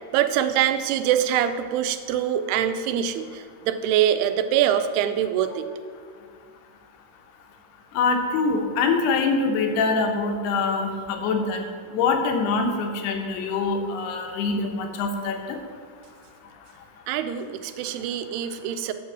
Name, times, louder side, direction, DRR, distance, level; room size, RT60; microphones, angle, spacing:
voice 1, 0.1-5.6 17.1-18.9, right 10 dB, 90° right, 9 dB, 2.6 m, -24 dB
voice 2, 7.9-11.6 11.9-15.6, left 4 dB, 85° left, 4 dB, 3.0 m, -24 dB
8.0 x 7.1 x 6.2 m, 2.1 s
omnidirectional pair, 4.5 m